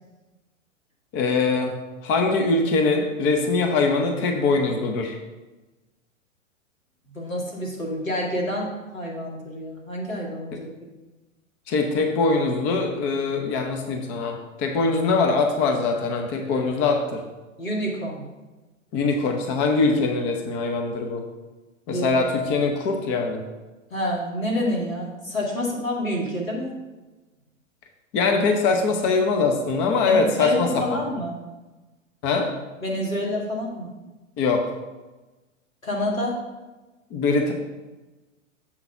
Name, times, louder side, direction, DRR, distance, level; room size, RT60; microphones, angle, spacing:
voice 1, 1.1-1.7 2.0-5.2 10.5-10.6 11.7-17.2 18.9-21.2 21.9-23.4 28.1-31.0 32.2-32.5 34.4-34.6 37.1-37.5, left 3 dB, 30° left, 3 dB, 0.8 m, -22 dB
voice 2, 7.1-10.7 17.6-18.2 21.9-22.1 23.9-26.7 30.1-31.4 32.8-33.9 35.8-36.4, left 1 dB, 85° left, -2 dB, 2.2 m, -28 dB
7.2 x 3.9 x 5.6 m, 1.1 s
figure-of-eight pair, 110°, 39 cm